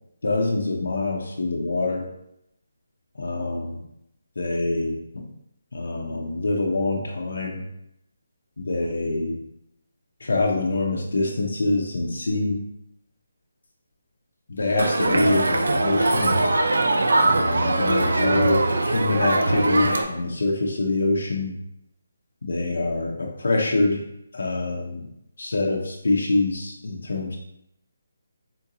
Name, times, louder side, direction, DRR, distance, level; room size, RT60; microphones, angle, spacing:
voice 1, 0.2-2.1 3.2-3.8 4.4-5.0 5.7-7.6 8.6-9.4 10.2-12.6 14.5-16.4 17.2-21.5 22.4-24.0 24.3-25.0 25.4-27.4, left 2 dB, 65° left, 0 dB, 0.5 m, -25 dB
Crowd, 14.8-20.0, right 2 dB, 80° right, 0.4 m, -21 dB
3.7 x 2.5 x 2.7 m, 0.79 s
hypercardioid pair, 180°, 0 cm